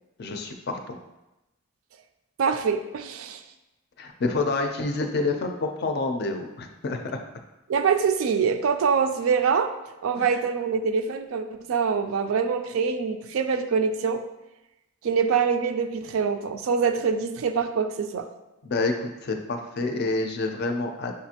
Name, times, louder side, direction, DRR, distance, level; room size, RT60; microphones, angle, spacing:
voice 1, 0.2-1.0 4.0-7.2 18.6-21.1, left 3 dB, 50° left, 5 dB, 0.4 m, -28 dB
voice 2, 2.4-3.4 7.7-9.7 10.0-14.2 15.0-18.3, right 6 dB, 70° right, 8 dB, 0.3 m, -24 dB
6.4 x 2.4 x 2.8 m, 0.96 s
head